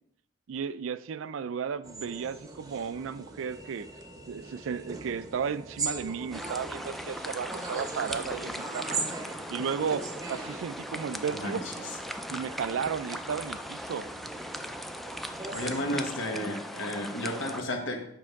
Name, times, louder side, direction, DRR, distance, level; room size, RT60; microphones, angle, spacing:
voice 1, 0.5-3.9 4.3-9.0 9.5-11.9 12.3-14.1, right 6 dB, 80° right, 15 dB, 0.4 m, -34 dB
sound 1, 1.8-16.1, right 3 dB, 20° right, 0.7 m, -41 dB
sound 2, 6.3-17.6, equal, ahead, 0.3 m, -39 dB
voice 2, 11.3-11.7 15.5-18.1, left 1 dB, 80° left, 3 dB, 1.2 m, -33 dB
7.5 x 5.4 x 3.5 m, 0.76 s
head